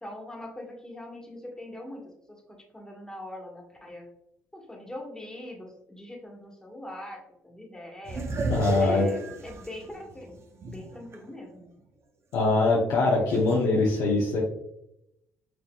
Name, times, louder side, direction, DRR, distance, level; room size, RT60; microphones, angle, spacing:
voice 1, 0.0-2.4 2.7-4.1 4.5-8.3 8.8-10.4 10.7-11.7, left 1 dB, 10° left, -1 dB, 1.4 m, -42 dB
sound 1, 8.1-11.2 11.6-11.7 13.3-13.6, right 3 dB, 45° right, 0.7 m, -33 dB
voice 2, 8.5-9.1 12.3-14.4, left 3 dB, 75° left, -3 dB, 0.8 m, -23 dB
6.0 x 2.6 x 2.3 m, 0.82 s
supercardioid pair, 65°, 6 cm